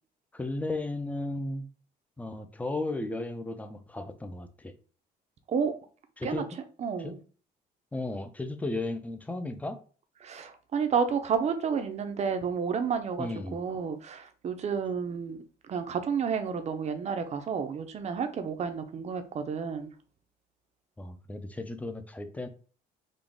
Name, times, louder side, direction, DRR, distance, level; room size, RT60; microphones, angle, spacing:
voice 1, 0.3-1.7 2.2-4.7 6.2-6.5 7.0-7.1 7.9-9.8 13.2-13.6 21.0-22.5, left 2 dB, 10° left, 0.5 m, -35 dB
voice 2, 6.8-7.2 10.2-19.9, right 6 dB, 40° right, 0.7 m, -31 dB
4.0 x 2.4 x 3.5 m
cardioid pair, 110°, 17 cm